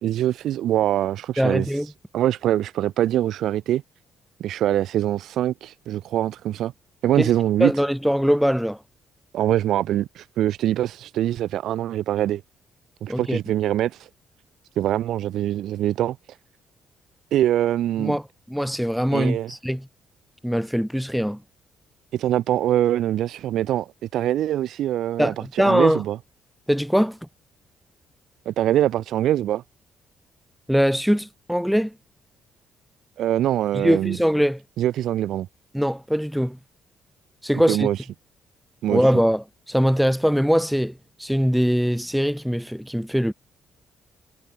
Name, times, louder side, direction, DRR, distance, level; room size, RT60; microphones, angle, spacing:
voice 1, 0.0-1.7 2.1-3.8 4.4-6.7 7.0-7.7 9.3-12.4 13.0-14.1 14.8-16.2 17.3-18.2 19.1-19.5 22.1-26.2 28.5-29.6 33.2-34.2 34.8-35.5 37.7-38.0 38.8-39.0, right 12 dB, 80° right, 0.6 m, -23 dB
voice 2, 1.4-1.9 7.2-7.3 7.6-8.8 13.1-13.4 18.0-18.2 18.5-19.9 20.4-21.4 25.2-26.0 26.7-27.2 30.7-31.9 33.7-34.6 35.7-36.6 37.4-37.9 38.9-40.9 41.2-43.3, equal, ahead, 0.5 m, -22 dB
cardioid pair, 90°, 0 cm